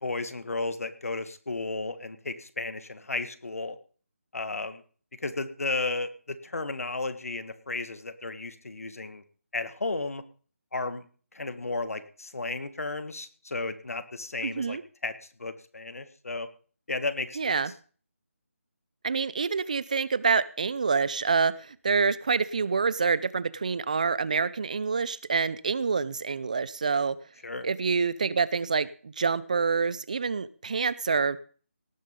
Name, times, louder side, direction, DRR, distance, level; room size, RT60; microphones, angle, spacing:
voice 1, 0.0-3.8 4.3-4.8 5.2-9.2 9.5-10.2 10.7-11.0 11.3-15.1 15.4-16.5 16.9-17.6 27.4-27.7, left 3 dB, 80° left, 12 dB, 1.7 m, -33 dB
voice 2, 14.4-14.8 17.4-17.7 19.0-27.2 27.6-31.4, right 5 dB, 30° right, 19 dB, 0.5 m, -27 dB
18.0 x 7.2 x 5.2 m, 0.41 s
figure-of-eight pair, 175°, 8 cm